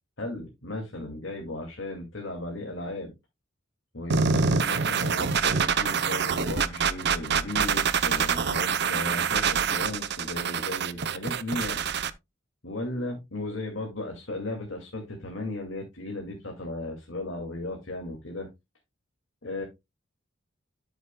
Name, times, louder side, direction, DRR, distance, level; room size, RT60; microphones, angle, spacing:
voice 1, 0.2-3.1 3.9-11.8 12.6-18.5 19.4-19.6, left 2 dB, 75° left, 2.3 m, -36 dB
sound 1, 4.1-12.1, right 6 dB, 55° right, 0.7 m, -26 dB
12.5 x 7.2 x 2.3 m
head